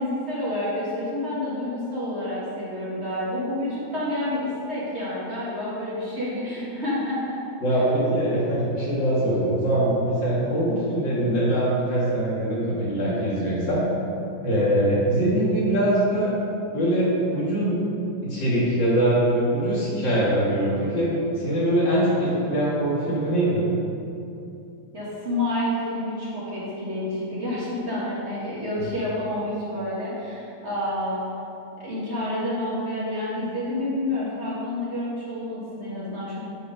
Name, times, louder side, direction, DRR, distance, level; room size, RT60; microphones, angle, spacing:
voice 1, 0.0-7.4 24.9-31.3 31.8-36.4, left 1 dB, 35° right, -8 dB, 2.1 m, -29 dB
voice 2, 7.6-13.8 14.4-16.3 16.7-17.8 18.2-21.1 21.4-23.7, right 1 dB, 75° left, -8 dB, 2.8 m, -22 dB
8.4 x 4.9 x 5.2 m, 2.7 s
omnidirectional pair, 2.1 m